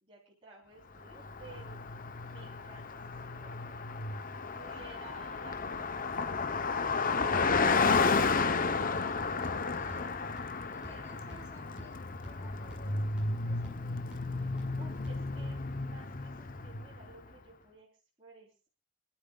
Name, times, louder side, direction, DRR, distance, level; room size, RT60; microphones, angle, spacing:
voice 1, 0.0-1.8 2.2-3.8 4.5-10.0 10.8-11.1 14.8-17.9 18.2-18.7, right 3 dB, 25° right, -6 dB, 3.8 m, -56 dB
Car passing by, 1.1-17.1, left 4 dB, 40° left, 0.8 m, -32 dB
sound 1, 8.0-15.5, left 1 dB, 5° right, 6.0 m, -53 dB
voice 2, 9.7-10.2 10.7-12.0 12.2-14.0, equal, 10° left, -1 dB, 7.8 m, -56 dB
28.0 x 12.0 x 2.4 m, 0.31 s
head